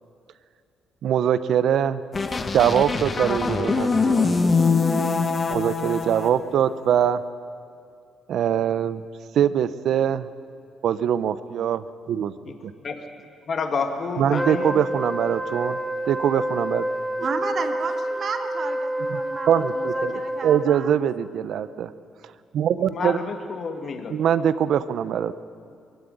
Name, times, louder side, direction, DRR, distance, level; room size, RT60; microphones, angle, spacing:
voice 1, 1.0-2.0 2.5-4.3 5.5-7.2 8.3-9.0 9.3-10.3 10.8-12.3 12.6-12.7 14.2-15.8 16.1-16.8 19.1-19.2 19.5-21.9 22.5-23.2 24.1-25.4, right 9 dB, 70° right, 14 dB, 0.8 m, -22 dB
sound 1, 2.1-6.3, left 4 dB, 35° left, 1.7 m, -23 dB
voice 2, 13.5-14.9 22.9-24.2, left 4 dB, 50° left, 5 dB, 2.1 m, -29 dB
Wind instrument woodwind instrument, 14.3-20.6, equal, 5° right, 2.1 m, -28 dB
voice 3, 17.2-20.9, right 5 dB, 50° right, 5 dB, 2.2 m, -32 dB
21.5 x 16.5 x 9.9 m, 2.4 s
cardioid pair, 90°, 0 cm